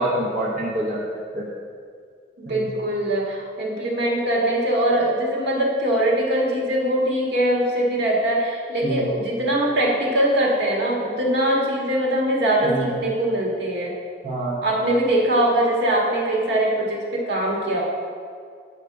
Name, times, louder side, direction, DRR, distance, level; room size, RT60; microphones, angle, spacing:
voice 1, 0.0-1.5 2.5-2.7 8.8-9.1 12.6-12.8 14.2-14.6, right 1 dB, 50° right, -5 dB, 1.1 m, -26 dB
voice 2, 2.4-13.9 14.6-17.8, right 1 dB, 75° right, -3 dB, 1.7 m, -22 dB
8.3 x 5.5 x 4.7 m, 2.1 s
head